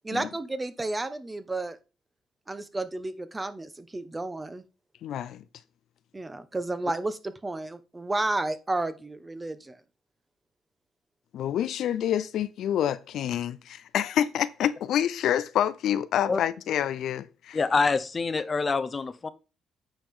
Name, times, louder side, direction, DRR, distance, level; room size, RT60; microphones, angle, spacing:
voice 1, 0.0-1.8 2.5-4.6 6.1-9.8, right 2 dB, 20° right, 1.1 m, -32 dB
voice 2, 5.0-5.4 11.3-17.6, left 10 dB, 75° left, 0.5 m, -27 dB
voice 3, 17.5-19.3, left 4 dB, 35° left, 0.8 m, -26 dB
8.9 x 5.2 x 3.7 m
cardioid pair, 90°, 0 cm